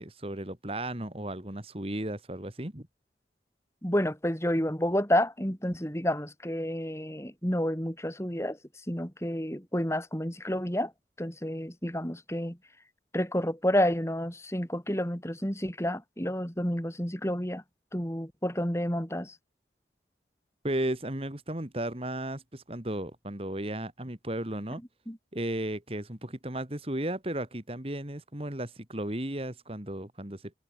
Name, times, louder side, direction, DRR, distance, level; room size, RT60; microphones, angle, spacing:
voice 1, 0.0-2.9 20.6-24.8 25.3-30.6, right 1 dB, 35° right, 2.3 m, -34 dB
voice 2, 3.8-8.6 8.9-10.9 11.2-12.6 13.1-17.6 17.9-19.4 25.1-25.2, equal, 15° left, 4.2 m, -30 dB
head